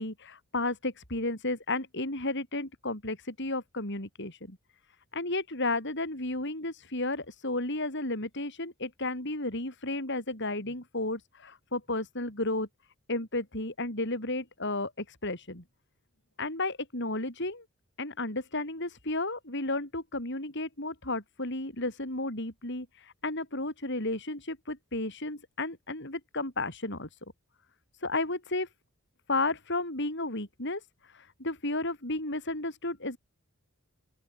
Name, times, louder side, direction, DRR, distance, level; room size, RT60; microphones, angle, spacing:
voice 1, 0.0-4.6 5.1-12.7 13.1-15.6 16.4-17.6 18.0-27.1 28.0-28.7 29.3-30.8 31.1-33.2, left 2 dB, 55° left, 7.7 m, -33 dB
open air
head